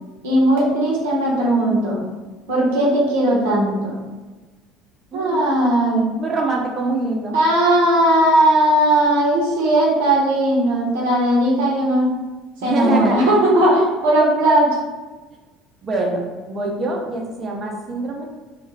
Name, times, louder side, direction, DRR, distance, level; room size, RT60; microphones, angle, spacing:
voice 1, 0.2-2.0 2.5-4.0 5.1-6.1 7.3-12.1 12.6-14.7, right 1 dB, 85° right, -4 dB, 0.8 m, -17 dB
voice 2, 5.1-5.5 6.2-7.4 12.6-13.4 15.8-16.2 16.5-18.2, right 3 dB, 40° right, 0 dB, 0.7 m, -24 dB
2.4 x 2.3 x 3.1 m, 1.2 s
supercardioid pair, 80°, 0 cm